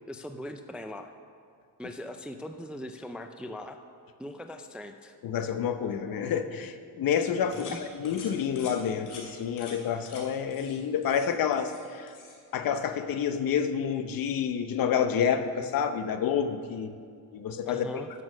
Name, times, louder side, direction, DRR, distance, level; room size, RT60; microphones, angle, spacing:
voice 1, 0.1-1.1 1.8-3.8 4.2-5.2 7.4-7.8 17.7-18.1, left 1 dB, 5° right, 7 dB, 0.3 m, -40 dB
voice 2, 5.2-12.1 12.5-17.0 17.3-18.0, left 7 dB, 60° left, 9 dB, 0.8 m, -29 dB
sound 1, 7.5-7.8 8.1-8.3 8.6-8.8 9.1-9.2 9.6-9.8 10.1-10.2 10.5-10.8 11.0-11.8 12.1-12.4, left 5 dB, 80° left, 2.6 m, -46 dB
11.0 x 6.3 x 6.3 m, 2.2 s
cardioid pair, 130°, 39 cm